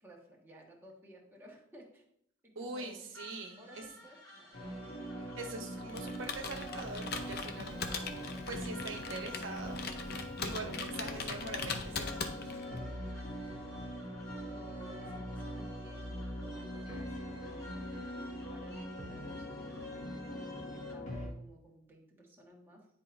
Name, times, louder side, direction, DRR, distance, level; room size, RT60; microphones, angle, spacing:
voice 1, 0.0-2.0 2.4-3.2 3.5-4.8 13.4-14.2 14.5-22.9, right 1 dB, 10° right, -3 dB, 1.3 m, -56 dB
voice 2, 2.5-3.9 5.2-9.8 10.4-12.5, right 3 dB, 75° right, 3 dB, 1.0 m, -43 dB
sound 1, 3.1-20.9, left 1 dB, 15° left, 1.6 m, -54 dB
sound 2, 4.5-21.3, equal, 35° left, 2.0 m, -42 dB
Computer keyboard, 5.9-12.8, left 4 dB, 55° left, 0.6 m, -41 dB
9.9 x 4.5 x 2.5 m, 0.69 s
head